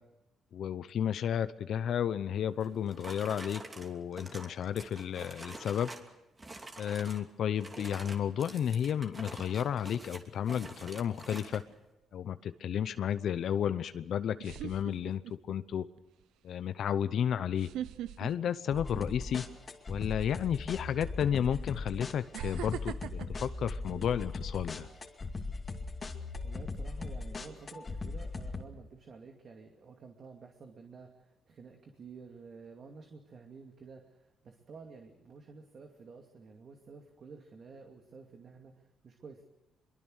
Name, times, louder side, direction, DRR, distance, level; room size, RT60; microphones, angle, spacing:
voice 1, 0.5-5.9 6.8-11.6 12.1-15.2 15.5-15.9 16.4-17.7 18.2-19.5 19.9-24.9, left 9 dB, 65° left, 12 dB, 0.8 m, -32 dB
sound 1, 2.6-6.1 6.4-7.2 7.6-11.6, right 2 dB, 25° right, 2.8 m, -47 dB
sound 2, 11.5-11.7 13.7-13.8 14.4-15.5 16.0-16.2 17.5-19.4 19.7-20.0 21.0-21.1 22.3-24.6 25.0-25.3, right 12 dB, 90° right, 0.7 m, -42 dB
sound 3, 18.7-28.6, left 3 dB, 35° left, 2.4 m, -39 dB
voice 2, 26.4-39.4, right 4 dB, 50° right, 3 dB, 2.5 m, -51 dB
23.5 x 23.0 x 6.5 m, 0.97 s
cardioid pair, 90°, 0 cm